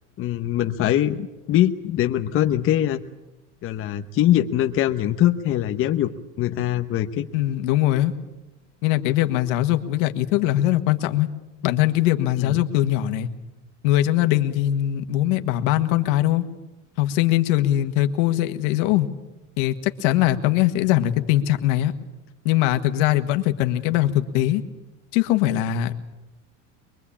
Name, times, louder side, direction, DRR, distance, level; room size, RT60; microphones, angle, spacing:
voice 1, 0.2-3.0 3.6-7.3 12.4-12.6, left 12 dB, 35° left, 6 dB, 1.0 m, -22 dB
voice 2, 7.3-8.1 8.8-11.3 11.6-13.3 13.8-16.4 17.0-19.1 19.6-21.9 22.5-24.6 25.1-25.9, left 14 dB, 80° left, 8 dB, 1.8 m, -21 dB
23.5 x 23.0 x 8.7 m, 1.0 s
cardioid pair, 160°, 36 cm